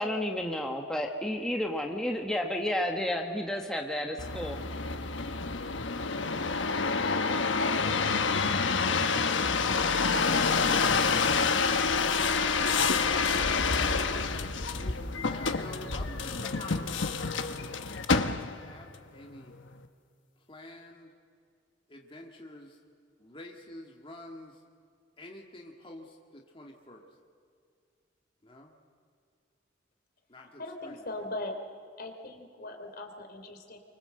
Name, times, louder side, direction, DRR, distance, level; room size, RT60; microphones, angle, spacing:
voice 1, 0.0-4.6, left 1 dB, 5° left, 1 dB, 1.4 m, -31 dB
sound 1, 4.2-18.7 19.3-19.9, left 4 dB, 75° left, 1.2 m, -28 dB
voice 2, 14.0-17.0 18.3-19.6 20.5-21.1 21.9-22.8 23.2-24.6 25.2-27.1 28.4-28.8 30.3-31.2, left 1 dB, 30° left, 1 dB, 2.0 m, -49 dB
voice 3, 30.4-31.6 32.0-33.8, left 2 dB, 55° left, 4 dB, 3.2 m, -40 dB
29.5 x 24.5 x 7.8 m, 2.2 s
head